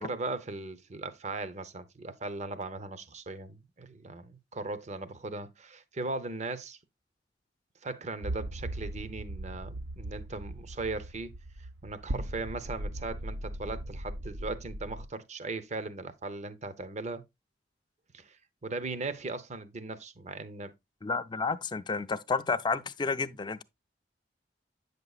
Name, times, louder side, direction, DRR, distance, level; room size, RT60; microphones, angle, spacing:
voice 1, 0.0-6.8 7.8-11.3 11.8-17.2 18.1-18.4 18.6-20.7, right 3 dB, 40° right, 0.7 m, -38 dB
sound 1, 8.2-15.1, right 1 dB, 75° right, 0.6 m, -39 dB
voice 2, 21.0-23.6, left 4 dB, 25° left, 0.4 m, -31 dB
8.7 x 6.7 x 2.4 m
head